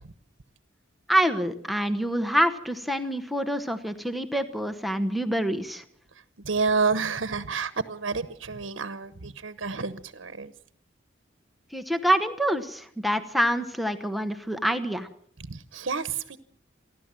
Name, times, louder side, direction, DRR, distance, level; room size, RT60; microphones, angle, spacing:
voice 1, 1.1-5.8 11.7-15.1, equal, ahead, 7 dB, 1.0 m, -26 dB
voice 2, 6.4-10.5 15.5-16.4, right 4 dB, 80° right, 13 dB, 1.0 m, -29 dB
29.0 x 12.0 x 7.5 m, 0.64 s
head